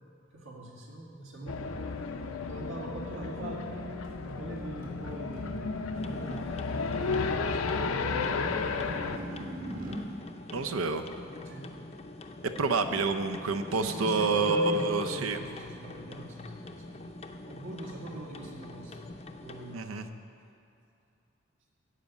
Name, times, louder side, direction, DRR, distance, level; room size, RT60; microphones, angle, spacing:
voice 1, 0.3-1.9 2.5-9.7 11.5-11.8 13.7-16.6 16.9-17.0 17.5-19.0 19.4-20.1, right 1 dB, 70° right, -2 dB, 1.9 m, -41 dB
sound 1, 1.5-9.2, left 4 dB, 85° left, 0.6 m, -33 dB
sound 2, 4.0-10.0, equal, 45° right, 2.0 m, -43 dB
sound 3, 5.9-19.8, left 2 dB, 30° left, 0.5 m, -45 dB
voice 2, 10.5-11.0 12.6-15.4 19.7-20.0, right 3 dB, 90° right, 8 dB, 0.7 m, -28 dB
12.5 x 5.0 x 8.2 m, 2.6 s
head